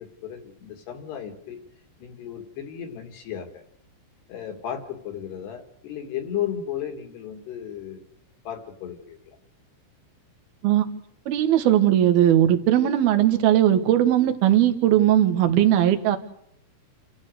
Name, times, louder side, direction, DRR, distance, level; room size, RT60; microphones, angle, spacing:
voice 1, 0.0-1.6 2.0-3.6 4.3-8.1 8.5-9.4, left 9 dB, 60° left, 6 dB, 3.8 m, -34 dB
voice 2, 11.3-16.2, right 11 dB, 60° right, 7 dB, 2.8 m, -19 dB
29.5 x 13.5 x 6.6 m, 0.75 s
omnidirectional pair, 6.0 m